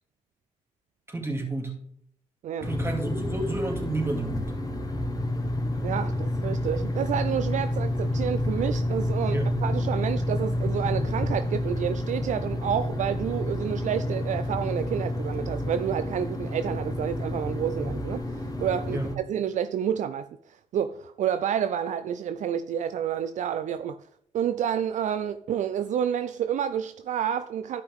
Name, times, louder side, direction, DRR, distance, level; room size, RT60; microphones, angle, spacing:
voice 1, 1.1-1.8 2.6-4.5 9.3-9.6 18.9-19.1, right 2 dB, 20° right, 2.4 m, -30 dB
sound 1, 2.6-19.2, left 1 dB, 25° left, 1.5 m, -29 dB
voice 2, 5.8-20.3 20.7-24.0 24.3-27.8, right 9 dB, 65° right, 0.4 m, -29 dB
11.0 x 5.5 x 3.6 m
supercardioid pair, 60°, 14 cm